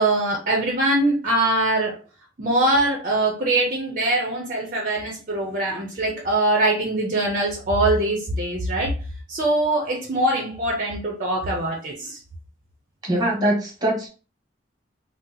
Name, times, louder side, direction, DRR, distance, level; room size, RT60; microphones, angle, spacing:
voice 1, 0.0-2.0 2.4-8.9 9.3-12.2, right 1 dB, 45° right, -1 dB, 0.6 m, -22 dB
voice 2, 13.0-14.1, right 1 dB, 20° right, 0 dB, 1.1 m, -22 dB
2.8 x 2.0 x 3.9 m, 0.35 s
head